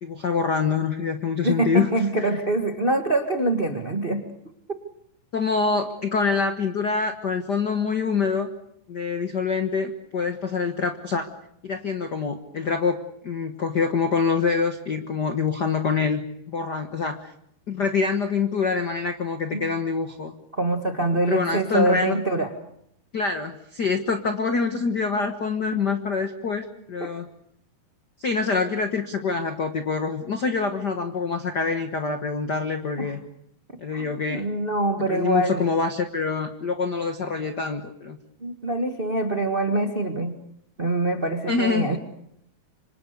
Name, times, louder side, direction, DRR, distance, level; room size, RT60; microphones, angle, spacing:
voice 1, 0.0-1.9 5.3-8.5 8.9-11.3 11.6-16.2 16.5-17.3 17.7-20.3 21.3-22.2 23.1-27.2 28.2-33.2 33.8-34.4 35.1-38.2 41.5-41.9, left 5 dB, 85° left, 7 dB, 0.9 m, -25 dB
voice 2, 1.4-4.2 19.5-19.7 20.5-22.5 25.7-25.8 27.0-27.1 33.0-33.1 33.9-35.7 38.4-40.3 40.8-42.0, right 2 dB, 65° right, 6 dB, 0.5 m, -24 dB
26.5 x 26.0 x 6.7 m, 0.73 s
omnidirectional pair, 4.1 m